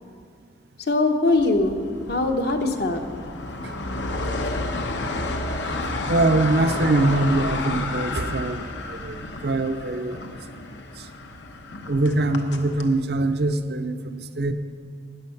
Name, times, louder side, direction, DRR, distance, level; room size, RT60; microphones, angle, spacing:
voice 1, 0.9-3.0, left 2 dB, 60° left, 5 dB, 1.0 m, -22 dB
sound 1, 1.4-12.9, left 2 dB, 85° left, 1.0 m, -31 dB
voice 2, 6.1-9.2 9.4-10.2 11.0-11.1 11.9-14.5, right 2 dB, 65° right, 9 dB, 0.6 m, -23 dB
13.5 x 9.5 x 5.8 m, 2.1 s
head